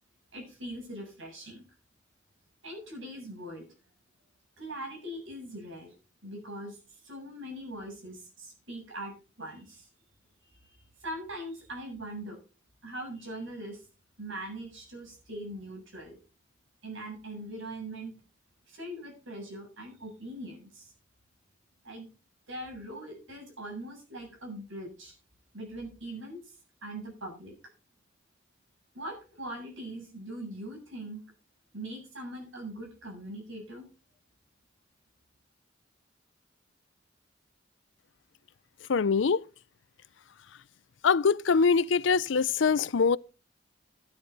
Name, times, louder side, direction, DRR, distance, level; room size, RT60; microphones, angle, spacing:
voice 1, 0.3-1.6 2.6-3.6 4.6-5.9 6.2-9.9 10.6-12.4 12.8-13.8 14.2-16.2 16.8-18.1 18.7-20.9 21.8-22.1 22.5-25.1 25.5-26.4 26.8-27.5 28.9-31.2 31.7-33.9, right 1 dB, 85° right, 7.7 m, -41 dB
voice 2, 38.9-39.4 41.0-43.2, left 5 dB, 80° left, 0.5 m, -23 dB
13.5 x 10.0 x 4.0 m
head